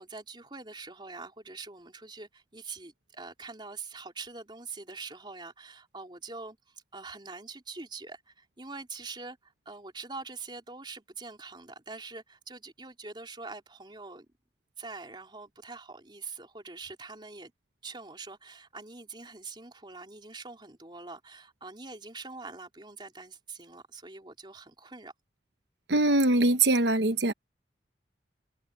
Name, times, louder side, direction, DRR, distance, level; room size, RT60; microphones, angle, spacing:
voice 1, 0.0-14.3 14.8-17.5 17.8-25.1, right 4 dB, 25° right, 3.7 m, -44 dB
voice 2, 25.9-27.3, right 2 dB, 75° right, 1.1 m, -23 dB
head